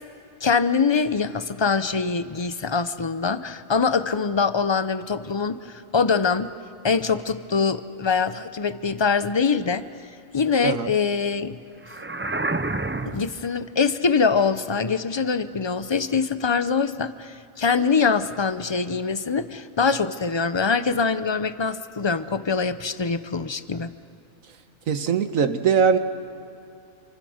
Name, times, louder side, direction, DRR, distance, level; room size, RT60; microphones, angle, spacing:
voice 1, 0.4-6.5 6.8-9.9 10.3-11.6 13.1-23.9, left 5 dB, 25° left, 12 dB, 0.6 m, -23 dB
sound 1, 11.8-13.4, right 2 dB, 20° right, 0.3 m, -28 dB
voice 2, 24.9-26.0, right 6 dB, 90° right, 9 dB, 1.6 m, -21 dB
27.5 x 25.5 x 6.5 m, 2.7 s
omnidirectional pair, 1.4 m